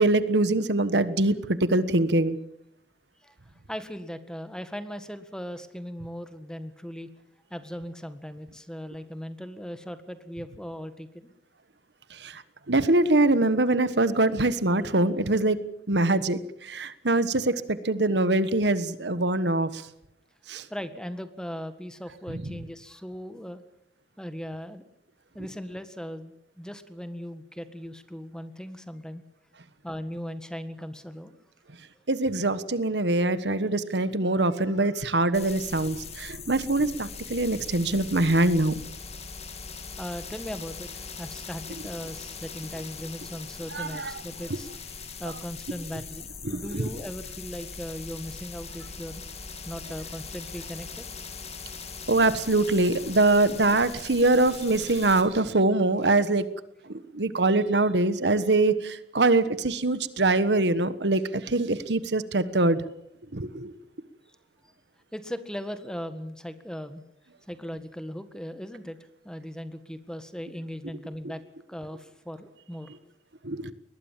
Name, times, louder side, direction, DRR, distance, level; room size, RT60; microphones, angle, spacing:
voice 1, 0.0-2.4 12.1-12.4 12.7-15.6 15.9-19.8 20.5-20.6 22.3-22.4 32.1-38.8 43.7-44.1 46.5-46.6 52.1-56.4 56.9-62.8 63.3-63.7 73.4-73.7, right 2 dB, 75° right, 14 dB, 1.4 m, -23 dB
voice 2, 3.7-7.1 7.5-11.3 20.7-23.6 24.2-24.8 25.3-29.2 29.8-31.4 40.0-44.7 45.2-49.2 49.6-51.0 65.1-67.0 67.5-69.0 69.2-71.4 71.7-72.9, equal, 5° left, 10 dB, 1.7 m, -38 dB
sound 1, 35.3-55.2, left 5 dB, 40° left, 3.0 m, -41 dB
22.0 x 20.0 x 7.5 m, 0.75 s
head